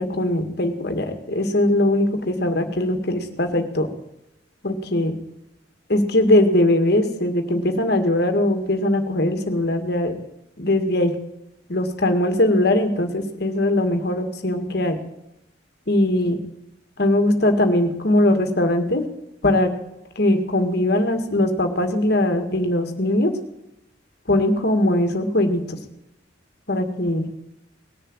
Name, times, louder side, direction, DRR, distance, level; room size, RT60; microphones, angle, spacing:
voice 1, 0.0-3.9 4.6-5.1 5.9-10.1 10.6-11.1 11.7-15.0 15.9-16.4 17.0-19.0 19.4-19.7 20.2-23.3 24.3-25.8 26.7-27.3, left 1 dB, 50° left, 6 dB, 2.0 m, -20 dB
19.5 x 6.8 x 9.0 m, 0.88 s
head